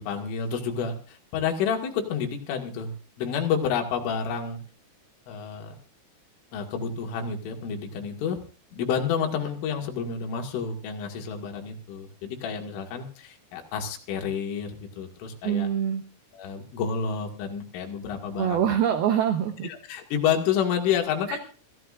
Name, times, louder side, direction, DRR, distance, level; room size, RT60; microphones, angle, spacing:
voice 1, 0.0-2.9 3.2-4.6 5.3-5.8 6.5-8.4 8.7-15.7 16.3-18.6 19.6-21.4, left 7 dB, 75° left, 3 dB, 4.3 m, -29 dB
voice 2, 15.4-16.0 18.4-19.7 21.3-21.4, right 9 dB, 85° right, 7 dB, 2.2 m, -24 dB
24.5 x 15.0 x 2.5 m, 0.39 s
omnidirectional pair, 5.7 m